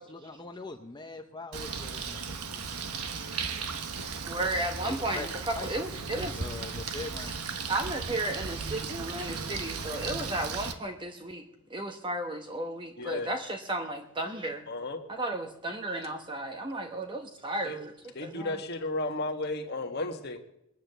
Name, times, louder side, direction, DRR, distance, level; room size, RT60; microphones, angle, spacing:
voice 1, 0.0-2.2 2.5-2.7 4.8-5.3 5.6-5.7 6.4-7.3, left 3 dB, 20° left, 5 dB, 0.7 m, -41 dB
Bird, 1.5-10.7, right 5 dB, 90° right, 1.3 m, -36 dB
voice 2, 4.3-6.4 7.7-11.4 11.7-14.6 15.1-17.9 18.2-18.6, right 1 dB, 20° right, 5 dB, 1.0 m, -34 dB
voice 3, 13.0-13.3 14.7-15.0 17.6-17.8 18.1-20.4, left 2 dB, 45° left, 4 dB, 1.6 m, -33 dB
21.0 x 9.4 x 6.8 m, 0.83 s
head